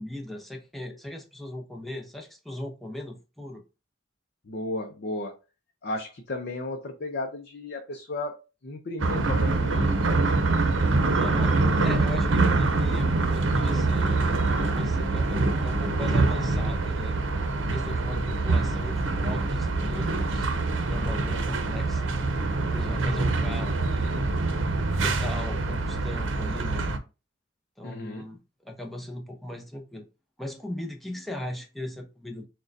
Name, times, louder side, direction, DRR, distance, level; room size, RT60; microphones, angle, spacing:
voice 1, 0.0-3.6 11.2-11.5 11.8-14.4 14.7-17.2 17.7-20.5 20.9-22.1 22.7-24.1 25.0-26.9 27.8-28.4 28.6-30.1 30.4-32.5, left 1 dB, ahead, 0.6 m, -38 dB
voice 2, 4.5-5.4 5.8-10.0 11.3-11.4 14.5-15.1 21.1-21.2 27.8-28.3, left 2 dB, 55° left, 0.5 m, -35 dB
sound 1, 9.0-27.0, right 3 dB, 80° right, 0.7 m, -25 dB
6.2 x 2.2 x 2.6 m
head